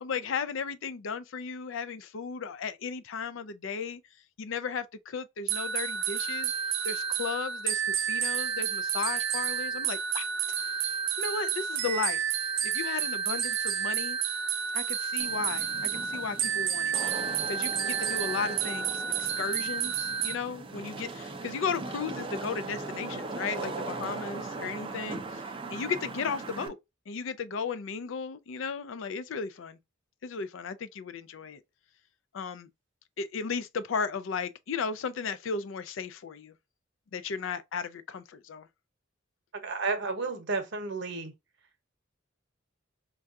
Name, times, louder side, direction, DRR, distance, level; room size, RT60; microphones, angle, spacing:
voice 1, 0.0-4.0 4.4-6.5 6.8-10.3 11.2-12.2 12.6-14.2 14.7-17.0 17.5-25.4 25.7-26.8 27.1-29.8 30.2-31.6 32.3-32.7 33.2-36.5 37.1-38.7, left 5 dB, 75° left, 0.4 m, -35 dB
sound 1, 5.5-20.4, right 8 dB, 80° right, 0.5 m, -30 dB
Wind / Rain, 15.2-26.7, right 3 dB, 25° right, 0.5 m, -39 dB
voice 2, 39.5-41.3, right 4 dB, 65° right, 0.9 m, -32 dB
4.5 x 2.3 x 2.5 m
head